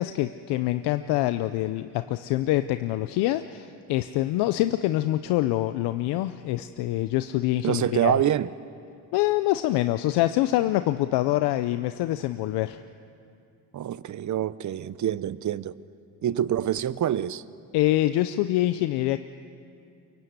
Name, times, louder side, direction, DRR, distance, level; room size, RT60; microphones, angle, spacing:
voice 1, 0.0-8.2 9.1-12.8 17.7-19.2, left 15 dB, 85° left, 0.7 m, -25 dB
voice 2, 7.6-8.5 13.7-15.7 16.2-17.4, right 11 dB, 50° right, 0.8 m, -26 dB
23.0 x 23.0 x 9.5 m
cardioid pair, 95°, 39 cm